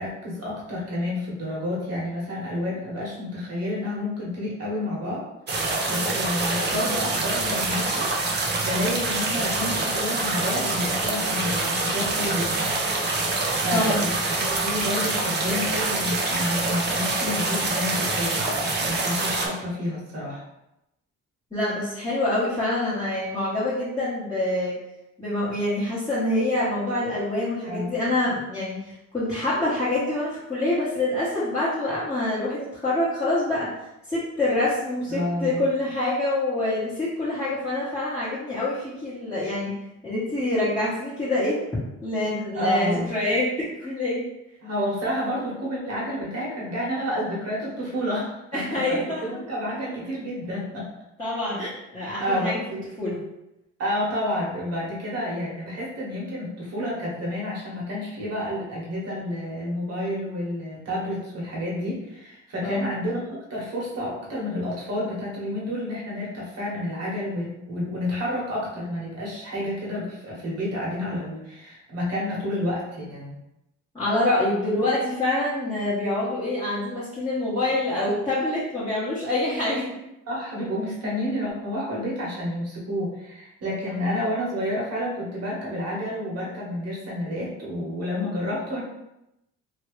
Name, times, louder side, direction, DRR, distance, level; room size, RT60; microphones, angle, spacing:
voice 1, 0.0-5.2 5.6-8.1 8.6-12.7 13.5-20.4 27.7-27.9 35.1-35.6 42.5-43.1 44.6-50.9 51.6-51.7 52.2-52.9 53.8-63.2 63.5-73.3 80.3-88.8, left 1 dB, 55° right, -4 dB, 1.4 m, -30 dB
sound 1, 5.5-19.5, right 2 dB, 35° right, 0.7 m, -25 dB
voice 2, 13.7-14.0 21.5-24.7 25.2-33.7 34.1-39.7 40.0-41.6 42.0-44.3 48.5-49.3 51.2-51.7 51.9-52.6 53.0-53.2 62.6-62.9 73.9-79.9 83.9-84.0, left 1 dB, 10° left, -12 dB, 1.2 m, -26 dB
2.9 x 2.7 x 3.2 m, 0.89 s
cardioid pair, 90°, 30 cm